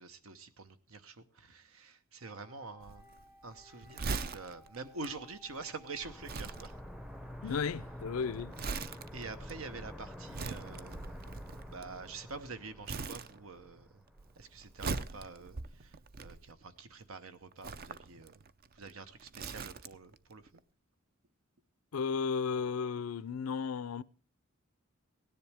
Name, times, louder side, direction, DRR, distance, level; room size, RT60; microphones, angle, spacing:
voice 1, 0.0-3.1 3.4-6.8 7.4-7.5 9.1-11.2 11.7-14.0 14.4-18.3 18.7-20.6, right 4 dB, 80° right, 1.0 m, -46 dB
Wind instrument woodwind instrument, 2.2-8.1, left 1 dB, 65° right, 4.1 m, -61 dB
Crumpling crinkling, 2.8-12.5 12.8-13.8 14.1-16.8 17.5-20.2 20.5-20.6, right 4 dB, 45° right, 0.5 m, -42 dB
sound 1, 6.0-14.7 15.0-15.1, equal, ahead, 0.6 m, -48 dB
voice 2, 7.4-8.6 21.9-24.0, left 5 dB, 90° left, 0.5 m, -34 dB
17.0 x 10.5 x 3.4 m
head